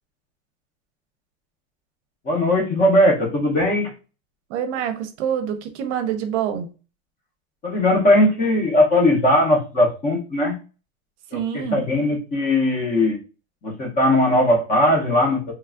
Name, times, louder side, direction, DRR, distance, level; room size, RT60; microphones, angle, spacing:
voice 1, 2.2-3.9 7.6-10.6 11.3-13.2 13.6-15.5, left 1 dB, 20° left, 0.6 m, -19 dB
voice 2, 4.5-6.7 11.3-11.8, right 8 dB, 55° right, 0.6 m, -26 dB
3.2 x 2.3 x 2.3 m
supercardioid pair, 165°, 41 cm